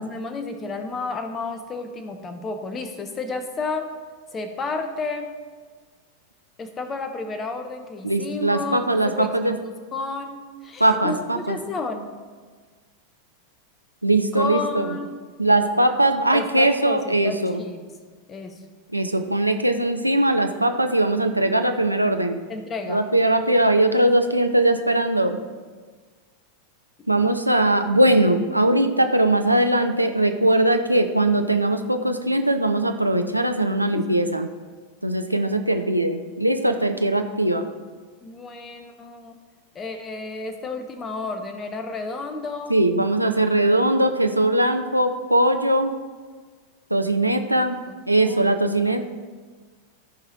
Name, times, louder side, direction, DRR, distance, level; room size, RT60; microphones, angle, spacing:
voice 1, 0.0-3.9 4.3-5.3 6.6-9.6 9.9-12.1 14.3-15.2 16.3-17.8 18.3-18.6 22.5-23.1 33.9-34.1 38.2-39.3 39.7-42.7 47.9-48.6, left 3 dB, 20° left, 7 dB, 0.9 m, -31 dB
voice 2, 8.0-9.6 10.8-11.6 14.0-14.9 15.4-17.6 18.9-22.4 22.9-25.4 27.1-34.5 35.0-37.6 42.7-45.9 46.9-47.8 48.1-49.1, right 1 dB, 85° right, 6 dB, 0.6 m, -20 dB
14.0 x 4.9 x 4.2 m, 1.5 s
figure-of-eight pair, 90°, 0 cm